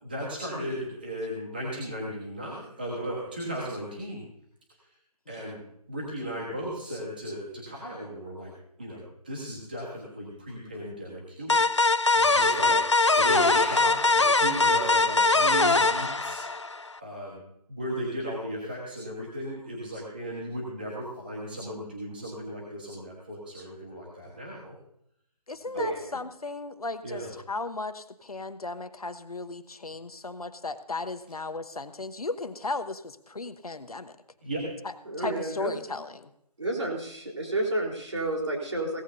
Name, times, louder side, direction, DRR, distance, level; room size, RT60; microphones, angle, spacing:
voice 1, 0.0-4.2 5.3-5.6 5.9-8.5 8.8-11.6 12.1-16.4 17.0-17.4 17.7-24.7 25.7-25.9 27.0-27.3 34.4-34.7, equal, 15° right, -5 dB, 1.4 m, -36 dB
sound 1, 11.5-16.9, left 3 dB, 45° left, 0.5 m, -22 dB
voice 2, 12.4-12.8 25.7-26.2 35.1-35.7 36.6-39.0, right 2 dB, 45° right, 0 dB, 3.8 m, -31 dB
voice 3, 25.5-34.2 34.8-36.3, left 3 dB, 65° left, 10 dB, 1.1 m, -36 dB
17.5 x 14.5 x 2.7 m, 0.74 s
figure-of-eight pair, 180°, 20 cm